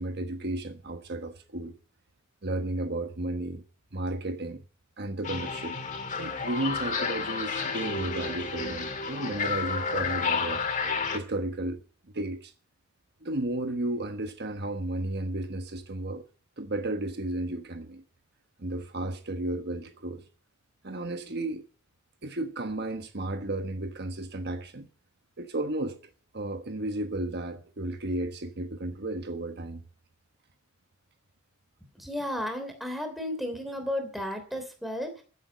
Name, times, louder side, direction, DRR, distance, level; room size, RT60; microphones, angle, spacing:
voice 1, 0.0-1.7 2.4-3.6 3.9-4.6 5.0-5.8 6.1-10.6 11.1-11.8 12.1-12.5 13.2-16.2 16.6-18.0 18.6-20.2 20.8-21.6 22.2-24.9 25.4-26.0 26.3-29.8, right 2 dB, 50° right, 1.2 m, -33 dB
sound 1, 5.2-11.2, left 5 dB, 35° left, 1.9 m, -31 dB
voice 2, 31.9-35.2, left 1 dB, ahead, 3.1 m, -33 dB
14.5 x 8.5 x 7.9 m
head